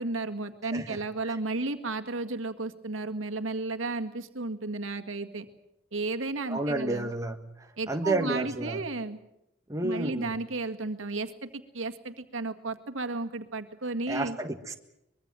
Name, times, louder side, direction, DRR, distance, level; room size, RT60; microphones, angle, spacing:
voice 1, 0.0-5.5 5.9-7.1 7.8-9.2 9.8-14.4, right 3 dB, 85° right, 1.9 m, -33 dB
voice 2, 0.7-1.3 6.5-8.8 9.7-10.3 14.1-14.7, right 2 dB, 15° right, 1.5 m, -31 dB
24.0 x 22.0 x 7.7 m
head